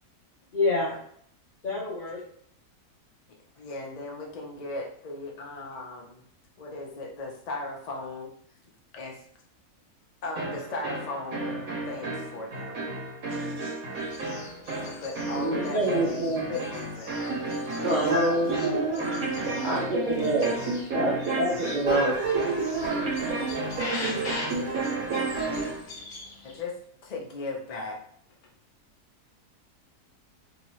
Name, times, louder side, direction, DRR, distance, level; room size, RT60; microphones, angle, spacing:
voice 1, 0.5-0.9 1.6-2.2 13.3-13.7 17.7-18.0, left 3 dB, 50° left, -7 dB, 0.7 m, -29 dB
voice 2, 3.6-6.2 6.6-8.3 8.9-9.2 10.2-12.8 14.8-17.2 26.4-26.8 27.0-27.9, left 3 dB, 85° left, -1 dB, 0.3 m, -37 dB
sound 1, 10.4-25.8, right 3 dB, 60° right, 1.4 m, -30 dB
sound 2, 13.9-26.6, left 2 dB, 70° left, 1.2 m, -43 dB
voice 3, 15.3-16.5 17.8-18.7 19.6-20.5 20.9-22.1, right 1 dB, 80° right, -6 dB, 0.4 m, -26 dB
2.9 x 2.7 x 2.9 m, 0.64 s
omnidirectional pair, 1.7 m